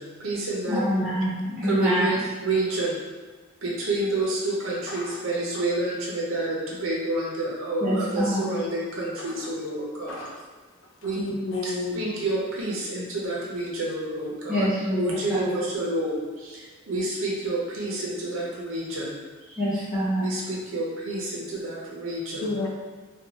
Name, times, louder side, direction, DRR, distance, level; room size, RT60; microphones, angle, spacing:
voice 1, 0.0-0.8 1.6-3.0 3.6-10.2 11.0-11.2 11.6-14.7 15.0-19.2 20.2-22.5, right 2 dB, 70° right, -4 dB, 0.6 m, -29 dB
voice 2, 0.7-2.2 7.8-8.4 14.5-15.5 19.6-20.2, equal, 5° right, -13 dB, 0.7 m, -25 dB
voice 3, 4.9-5.2 9.2-9.6 10.1-10.4 11.0-12.0 22.4-22.7, left 3 dB, 65° left, 0 dB, 0.4 m, -32 dB
2.6 x 2.2 x 2.8 m, 1.4 s
head